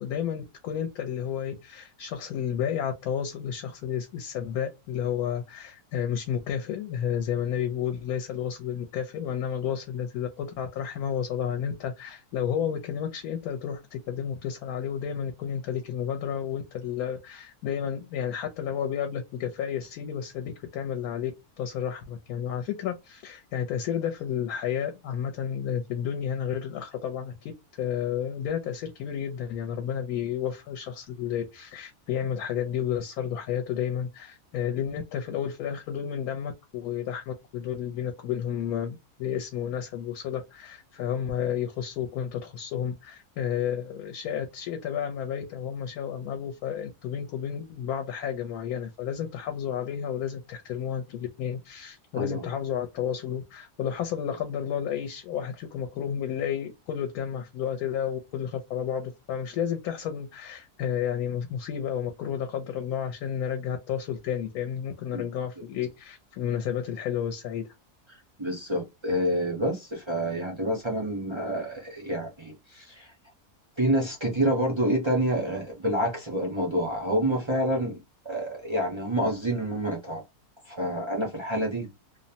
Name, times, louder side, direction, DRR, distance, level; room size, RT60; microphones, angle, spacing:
voice 1, 0.0-21.3 21.6-27.5 27.8-67.6, left 9 dB, 75° left, 1.0 m, -31 dB
voice 2, 68.4-73.1 73.8-78.0 78.2-80.2 80.6-81.9, right 1 dB, 45° right, 0.3 m, -28 dB
2.7 x 2.0 x 2.6 m
omnidirectional pair, 1.7 m